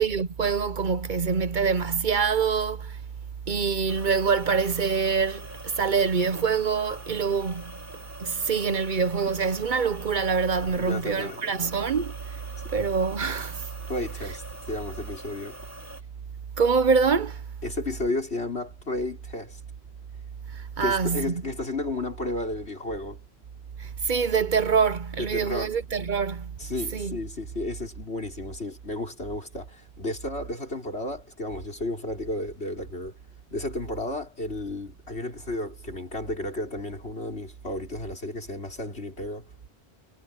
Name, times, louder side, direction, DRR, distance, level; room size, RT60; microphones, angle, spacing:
voice 1, 0.0-3.0 3.5-7.7 8.2-12.1 12.7-13.7 16.6-17.4 20.5-21.3 23.8-26.5 26.9-27.2, right 5 dB, 50° right, 0.9 m, -25 dB
sound 1, 3.9-16.0, right 1 dB, 15° right, 3.2 m, -44 dB
voice 2, 10.7-11.8 12.7-12.8 13.9-15.6 17.6-19.6 20.8-23.2 25.2-25.7 26.6-33.2 33.5-39.5, left 2 dB, 80° left, 5.4 m, -33 dB
omnidirectional pair, 1.1 m